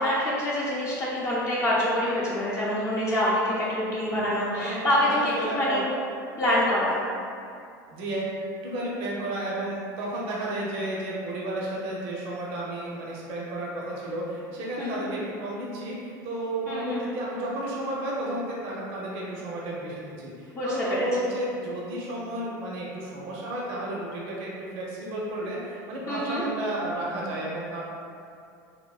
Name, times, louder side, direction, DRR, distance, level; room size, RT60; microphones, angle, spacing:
voice 1, 0.0-5.8 6.4-7.0 14.8-15.0 16.7-17.1 20.5-21.1 26.1-26.4, left 1 dB, 25° left, -9 dB, 0.5 m, -26 dB
voice 2, 4.5-5.9 7.9-27.9, right 1 dB, 60° right, -4 dB, 0.7 m, -32 dB
3.5 x 2.1 x 2.3 m, 2.4 s
hypercardioid pair, 90°, 11 cm